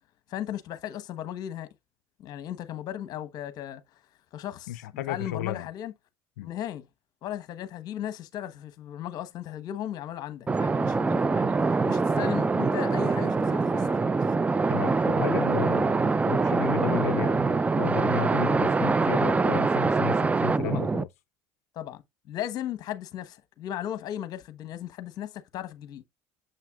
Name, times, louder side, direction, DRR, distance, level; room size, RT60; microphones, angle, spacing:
voice 1, 0.3-1.7 2.2-3.8 4.3-5.9 6.4-6.9 7.2-13.9 20.6-20.8 21.7-26.0, left 11 dB, 55° left, 1.1 m, -36 dB
voice 2, 4.7-5.7 6.4-6.5 14.7-21.1, left 13 dB, 90° left, 0.4 m, -33 dB
sound 1, 10.5-21.0, right 4 dB, 15° right, 0.4 m, -24 dB
7.2 x 5.8 x 2.3 m
supercardioid pair, 85°, 8 cm